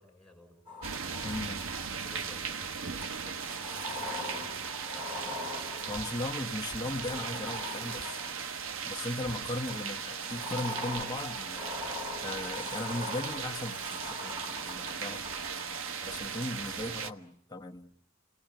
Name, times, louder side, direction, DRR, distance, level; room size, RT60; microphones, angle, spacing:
voice 1, 0.0-1.1 1.7-5.6, left 1 dB, ahead, 6.3 m, -56 dB
Sliding door, 0.7-2.0 3.0-8.6 9.7-16.8, left 2 dB, 25° right, 4.1 m, -42 dB
sound 1, 0.8-17.1, right 6 dB, 70° right, 1.0 m, -38 dB
voice 2, 1.2-1.6 5.9-8.2 8.9-11.7 12.2-15.3 16.1-17.9, left 1 dB, 20° left, 1.3 m, -37 dB
sound 2, 5.9-6.2 6.7-6.9 7.9-8.2 9.2-9.5 10.9-11.1, left 1 dB, 60° left, 1.4 m, -51 dB
29.0 x 19.5 x 9.0 m
head